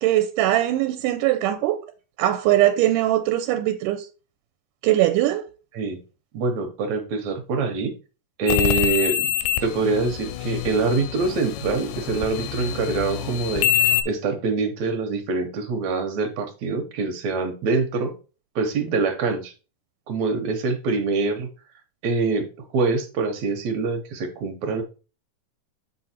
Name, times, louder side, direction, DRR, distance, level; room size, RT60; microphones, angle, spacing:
voice 1, 0.0-1.8 2.2-4.1 4.8-5.5, right 14 dB, 85° right, 2.2 m, -21 dB
voice 2, 6.3-7.9 8.4-9.2 9.6-18.1 18.6-19.5 20.1-21.5 22.0-24.8, right 3 dB, 70° right, 2.0 m, -25 dB
sound 1, 8.5-14.0, left 13 dB, 85° left, 2.2 m, -25 dB
7.4 x 3.8 x 4.2 m
omnidirectional pair, 3.7 m